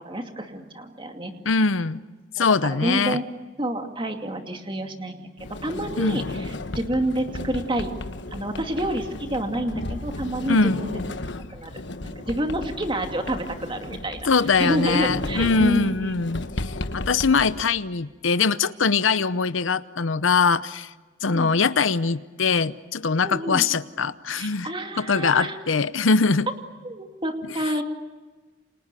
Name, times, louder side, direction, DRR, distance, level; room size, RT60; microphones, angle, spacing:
voice 1, 0.0-1.3 2.4-3.2 3.6-5.3 5.6-7.9 8.3-10.9 11.5-11.7 12.0-14.3 14.6-16.2 21.3-21.5 23.2-23.6 24.4-25.6 26.8-27.8, right 1 dB, 25° right, 5 dB, 2.4 m, -28 dB
voice 2, 1.4-2.0 2.4-3.2 6.0-6.2 10.5-10.8 14.3-20.9 21.2-24.7 25.0-26.5, left 4 dB, 80° left, 14 dB, 0.8 m, -22 dB
Sliding door, 5.4-17.6, left 2 dB, 60° left, 1.3 m, -34 dB
29.5 x 27.0 x 6.8 m, 1.3 s
head